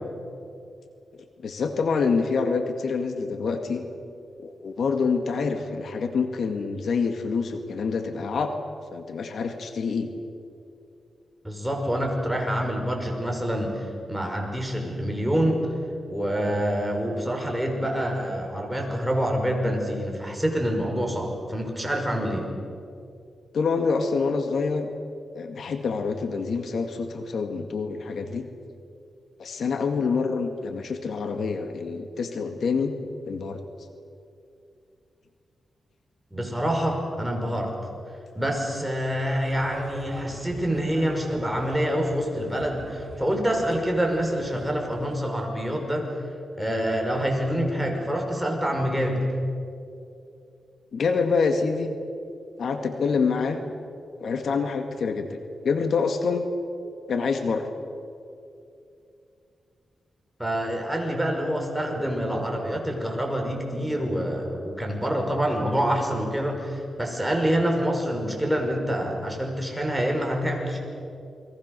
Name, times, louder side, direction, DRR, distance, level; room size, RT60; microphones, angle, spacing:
voice 1, 1.4-3.8 4.4-8.6 8.9-10.1 23.5-24.9 25.3-28.5 29.4-32.9 33.3-33.6 50.9-51.9 52.6-53.6 54.2-55.3 55.6-56.5 57.1-57.7, left 5 dB, 70° left, 6 dB, 2.0 m, -26 dB
voice 2, 11.4-15.7 16.1-22.5 36.3-37.7 38.3-46.1 46.6-49.2 60.4-70.8, equal, 5° right, 1 dB, 5.6 m, -26 dB
sound 1, 39.4-45.2, right 2 dB, 30° right, 3.8 m, -42 dB
29.0 x 22.0 x 6.8 m, 2.6 s
cardioid pair, 90°, 0 cm